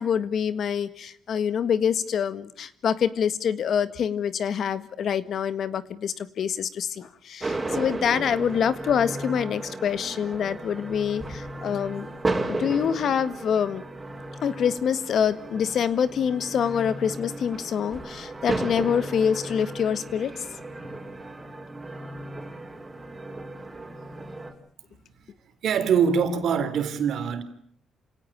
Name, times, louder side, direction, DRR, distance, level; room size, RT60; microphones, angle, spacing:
voice 1, 0.0-12.1 12.5-13.8 14.4-20.4, left 8 dB, 65° left, 1.7 m, -26 dB
sound 1, 7.4-24.5, right 2 dB, 20° right, 5.2 m, -34 dB
voice 2, 25.6-27.4, right 7 dB, 70° right, 3.6 m, -23 dB
28.0 x 18.0 x 8.8 m
cardioid pair, 90°, 0 cm